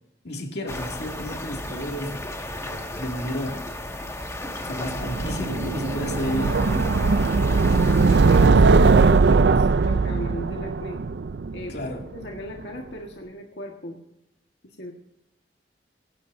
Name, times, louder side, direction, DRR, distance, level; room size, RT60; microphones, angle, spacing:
voice 1, 0.2-2.3 2.6-3.7 4.6-6.9 11.7-12.0, equal, 70° left, 2 dB, 2.4 m, -31 dB
sound 1, 0.7-8.5, left 1 dB, 15° left, 1.9 m, -34 dB
sound 2, 5.0-12.0, right 4 dB, 70° right, 0.5 m, -19 dB
voice 2, 8.1-11.0 11.5-14.0 14.6-14.9, equal, 85° left, 1 dB, 1.7 m, -37 dB
21.0 x 17.5 x 2.7 m, 0.83 s
head